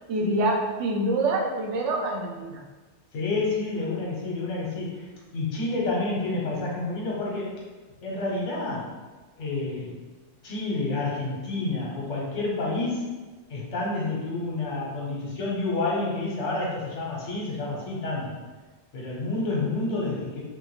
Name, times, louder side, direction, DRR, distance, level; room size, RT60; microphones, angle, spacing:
voice 1, 0.1-2.6, right 2 dB, 80° right, -1 dB, 0.9 m, -26 dB
voice 2, 3.1-5.1 5.3-7.5 8.0-8.9 9.4-10.0 10.4-13.1 13.5-18.4 18.9-20.4, left 2 dB, 85° left, -4 dB, 1.2 m, -29 dB
3.4 x 2.1 x 3.1 m, 1.3 s
omnidirectional pair, 1.2 m